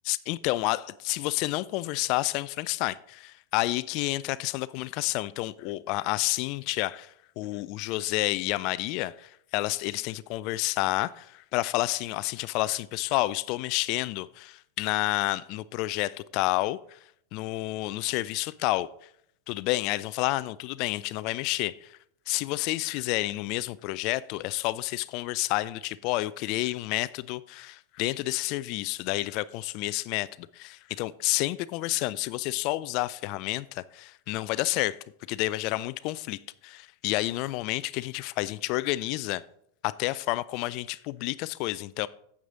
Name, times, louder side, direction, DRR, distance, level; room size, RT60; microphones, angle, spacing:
voice 1, 0.1-17.0 17.3-18.9 19.5-22.0 22.3-35.0 35.3-39.4 39.8-42.1, left 18 dB, 45° left, 0.3 m, -30 dB
9.2 x 7.4 x 3.8 m
figure-of-eight pair, 90°, 0 cm